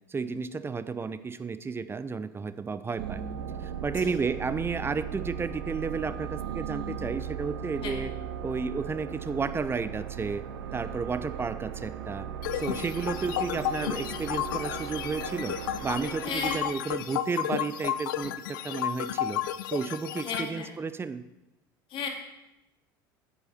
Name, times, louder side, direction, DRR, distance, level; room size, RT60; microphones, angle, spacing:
voice 1, 0.1-3.2 3.6-8.1 8.4-10.4 10.7-12.3 12.5-15.6 15.8-19.4 19.7-21.2, right 5 dB, 20° right, 13 dB, 0.6 m, -32 dB
sound 1, 3.0-16.6, right 8 dB, 85° right, 0.9 m, -37 dB
sound 2, 12.4-20.4, left 12 dB, 75° left, 0.5 m, -33 dB
voice 2, 16.2-16.6 20.2-20.7 21.9-22.1, left 5 dB, 50° left, 3 dB, 2.1 m, -34 dB
9.8 x 8.1 x 4.3 m, 0.93 s
hypercardioid pair, 75°, 11 cm